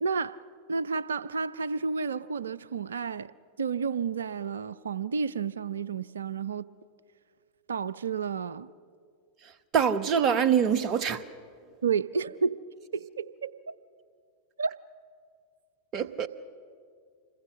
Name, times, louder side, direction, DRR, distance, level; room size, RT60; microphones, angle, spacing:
voice 1, 0.0-3.3 3.6-6.6 7.7-8.7 11.8-12.6 12.9-13.7 14.6-14.8, right 5 dB, 70° right, 0.5 m, -31 dB
voice 2, 9.7-11.2 15.9-16.3, right 7 dB, 35° right, 1.0 m, -24 dB
26.5 x 21.0 x 6.3 m
figure-of-eight pair, 90°, 0 cm